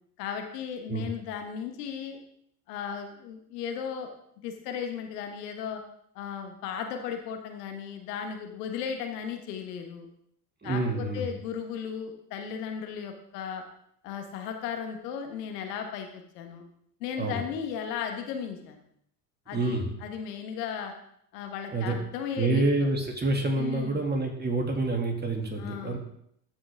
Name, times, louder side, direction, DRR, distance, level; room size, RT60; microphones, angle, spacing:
voice 1, 0.2-2.2 2.7-4.1 4.4-5.8 6.1-10.1 10.6-13.6 14.0-16.6 17.0-18.8 19.5-20.9 21.3-22.9 23.6-24.0 25.6-26.0, left 7 dB, 75° left, 4 dB, 1.3 m, -36 dB
voice 2, 10.6-11.3 17.2-17.4 19.5-19.9 21.7-22.0 22.4-26.0, right 2 dB, 20° right, 2 dB, 2.3 m, -27 dB
13.5 x 5.2 x 3.5 m, 0.70 s
hypercardioid pair, 70°, 48 cm